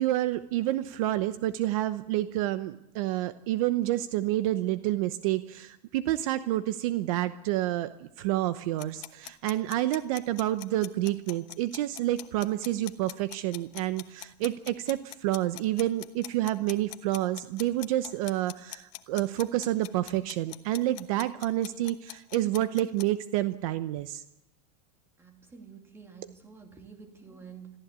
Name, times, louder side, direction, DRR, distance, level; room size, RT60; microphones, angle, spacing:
voice 1, 0.0-24.2, right 14 dB, 55° right, 12 dB, 0.9 m, -29 dB
sound 1, 8.8-23.1, left 20 dB, 45° left, 1.1 m, -43 dB
voice 2, 25.2-27.8, right 6 dB, 10° right, 4 dB, 2.6 m, -49 dB
22.0 x 15.0 x 8.3 m, 0.89 s
supercardioid pair, 165°, 21 cm